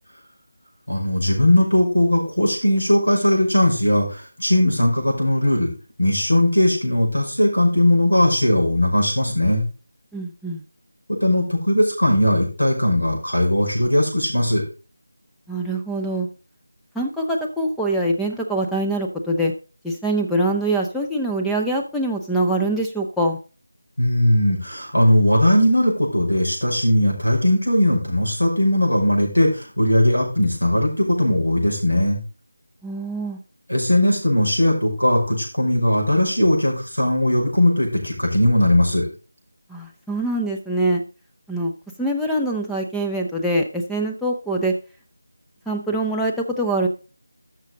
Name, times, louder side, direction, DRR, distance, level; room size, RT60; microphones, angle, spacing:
voice 1, 0.9-5.7 6.0-9.6 11.1-14.6 24.0-32.2 33.7-39.1, left 1 dB, 80° left, 0 dB, 5.7 m, -19 dB
voice 2, 10.1-10.6 15.5-16.3 16.9-19.5 19.8-23.4 32.8-33.4 39.7-41.0 41.5-41.7 42.0-44.7 45.7-46.9, right 1 dB, ahead, 0 dB, 0.7 m, -24 dB
12.5 x 6.6 x 3.9 m, 0.34 s
figure-of-eight pair, 165°, 0 cm